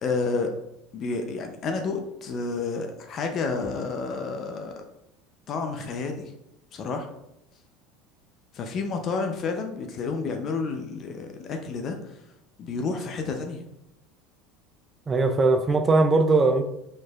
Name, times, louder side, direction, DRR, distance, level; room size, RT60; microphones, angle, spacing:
voice 1, 0.0-0.5 0.9-4.8 5.5-6.2 6.7-7.1 8.5-12.2 12.6-13.6, left 4 dB, 45° left, 0.5 m, -30 dB
voice 2, 15.1-16.6, right 3 dB, 25° right, 0.3 m, -20 dB
4.3 x 3.0 x 2.3 m
supercardioid pair, 100°, 0 cm